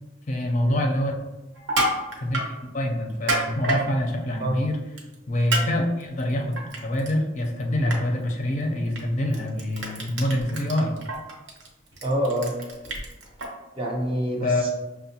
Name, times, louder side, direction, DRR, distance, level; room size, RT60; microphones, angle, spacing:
voice 1, 0.3-1.2 2.2-4.8 5.3-10.9 14.4-14.6, left 1 dB, 40° left, 1 dB, 0.5 m, -25 dB
Crushing, 1.6-2.5 3.1-3.8 5.0-5.1 5.5-5.6 6.0-7.1 7.4-7.6 7.9-8.0 8.9-9.0 9.3-13.5, right 1 dB, 65° right, 0.8 m, -27 dB
voice 2, 12.0-12.5 13.8-14.7, equal, 30° right, -1 dB, 0.6 m, -26 dB
5.8 x 2.1 x 2.7 m, 1.1 s
head